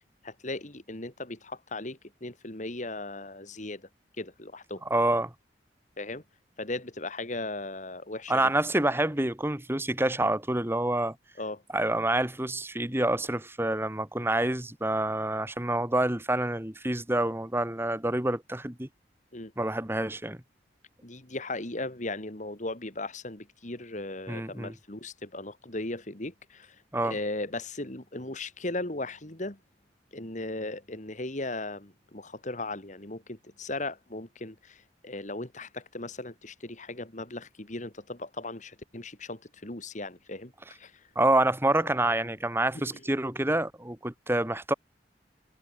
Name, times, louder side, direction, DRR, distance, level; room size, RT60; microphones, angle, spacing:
voice 1, 0.2-3.9 4.2-4.8 6.0-6.2 6.6-8.4 11.4-11.6 19.3-19.5 21.0-26.8 27.0-29.6 30.1-40.5 40.8-40.9 42.2-42.3, left 2 dB, 45° left, 2.6 m, -37 dB
voice 2, 4.9-5.3 8.3-11.2 11.7-18.9 19.6-20.4 24.3-24.7 26.9-27.2 41.2-44.7, right 1 dB, 15° right, 1.6 m, -27 dB
head